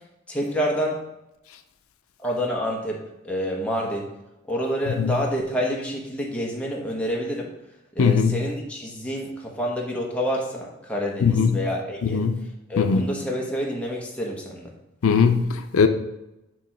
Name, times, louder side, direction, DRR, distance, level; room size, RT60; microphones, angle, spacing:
voice 1, 0.3-1.0 2.2-4.1 4.5-7.5 7.9-12.2 12.7-14.7, equal, 5° left, -2 dB, 1.0 m, -28 dB
voice 2, 8.0-8.4 11.2-11.6 12.0-12.4 12.8-13.0 15.0-15.9, left 5 dB, 85° left, 7 dB, 0.5 m, -20 dB
8.4 x 3.0 x 4.3 m, 0.91 s
head